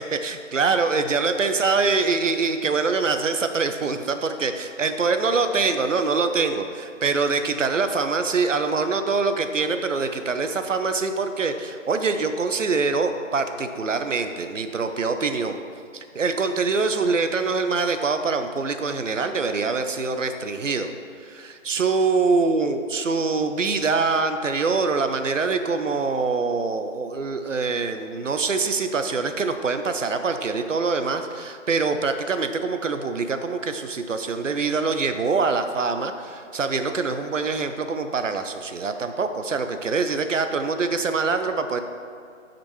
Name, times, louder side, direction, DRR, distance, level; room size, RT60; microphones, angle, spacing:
voice 1, 0.1-15.6 15.9-20.9 21.2-41.8, right 4 dB, 70° right, 8 dB, 0.6 m, -24 dB
8.8 x 5.1 x 3.1 m, 2.3 s
figure-of-eight pair, 155°, 39 cm